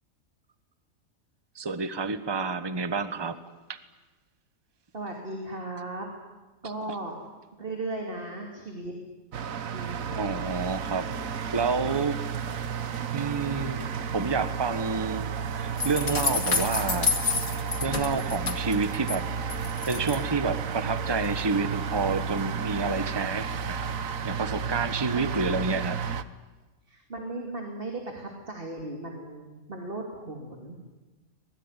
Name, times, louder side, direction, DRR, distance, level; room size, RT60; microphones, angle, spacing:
voice 1, 1.5-3.4 3.7-3.8 10.1-12.3 13.1-17.1 17.8-19.6 19.9-23.9 24.2-26.0, right 4 dB, 20° right, 11 dB, 1.2 m, -29 dB
voice 2, 4.9-6.1 6.6-7.2 7.6-8.9 9.7-10.2 25.2-25.3 26.9-30.8, right 2 dB, 45° right, 2 dB, 3.2 m, -36 dB
sound 1, 9.3-26.2, right 6 dB, 85° right, 1.5 m, -32 dB
sound 2, 15.8-19.2 19.5-20.2, left 5 dB, 65° left, 2.8 m, -29 dB
25.5 x 20.5 x 10.0 m, 1.2 s
omnidirectional pair, 1.4 m